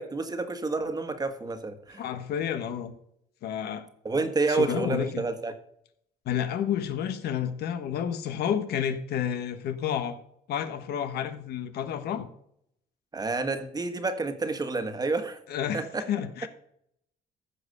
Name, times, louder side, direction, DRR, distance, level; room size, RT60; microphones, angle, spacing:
voice 1, 0.0-2.0 4.0-5.5 13.1-15.4 15.7-16.0, right 3 dB, 20° right, 8 dB, 1.6 m, -29 dB
voice 2, 2.0-2.9 3.4-3.9 4.5-5.3 6.2-10.2 10.5-12.3 15.5-16.5, left 9 dB, 70° left, 9 dB, 1.3 m, -30 dB
14.5 x 5.6 x 6.6 m, 0.71 s
cardioid pair, 110°, 17 cm